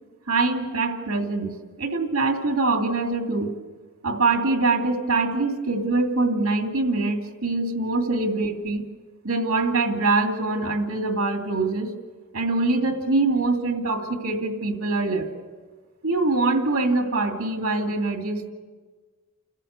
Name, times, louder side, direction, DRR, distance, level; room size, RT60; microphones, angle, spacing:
voice 1, 0.3-3.6 4.0-8.8 9.2-11.9 12.3-15.3 16.0-18.5, right 3 dB, 75° right, 3 dB, 2.6 m, -24 dB
29.0 x 14.0 x 8.2 m, 1.4 s
head